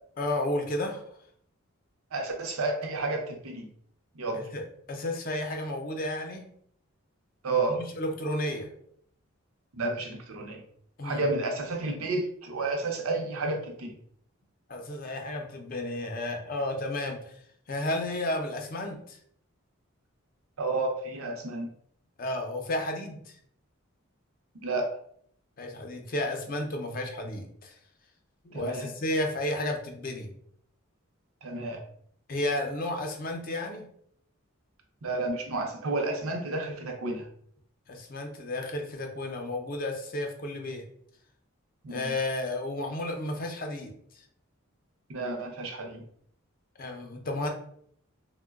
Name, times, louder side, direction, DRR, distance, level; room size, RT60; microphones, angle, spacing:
voice 1, 0.2-1.0 4.3-6.5 7.7-8.7 11.0-11.3 14.7-17.3 17.7-19.2 22.2-23.3 25.6-27.8 28.4-30.3 32.3-33.9 37.9-40.9 41.9-44.2 46.8-47.5, left 1 dB, 40° left, 3 dB, 0.5 m, -32 dB
voice 2, 2.1-3.7 4.1-4.5 7.4-7.8 9.7-10.6 11.0-13.9 20.6-21.7 24.6-24.9 28.5-28.9 31.4-31.8 35.0-37.3 41.8-42.1 45.1-46.0, right 2 dB, 85° right, 2 dB, 0.6 m, -31 dB
3.6 x 2.1 x 2.3 m, 0.65 s
head